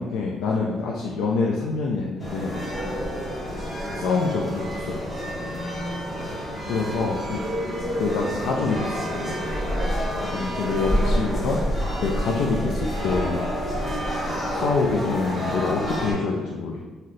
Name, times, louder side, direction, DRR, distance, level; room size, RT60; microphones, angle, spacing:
voice 1, 0.0-2.7 3.9-5.0 6.7-7.4 8.0-9.3 10.3-11.6 12.0-13.4 14.5-16.8, left 4 dB, 85° left, -2 dB, 0.3 m, -26 dB
sound 1, 2.2-16.1, equal, 30° left, 1.4 m, -28 dB
voice 2, 2.8-3.3 5.4-6.3 7.4-7.9 9.7-10.2, equal, 65° left, -4 dB, 1.0 m, -39 dB
2.7 x 2.0 x 3.8 m, 1.3 s
cardioid pair, 130°, 0 cm